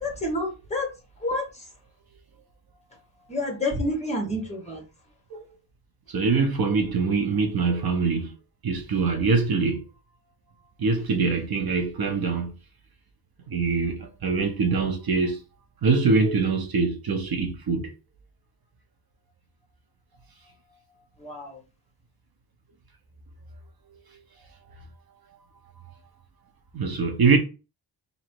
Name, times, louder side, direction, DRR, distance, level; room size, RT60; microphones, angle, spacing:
voice 1, 0.0-0.9 1.2-1.4 3.3-4.8 21.2-21.6, left 1 dB, 15° left, 1.4 m, -28 dB
voice 2, 6.1-8.3 8.6-9.8 10.8-12.5 13.5-15.4 15.8-17.9 26.7-27.4, right 4 dB, 55° right, 0.8 m, -23 dB
3.0 x 2.7 x 4.5 m
wide cardioid pair, 130°, 45 cm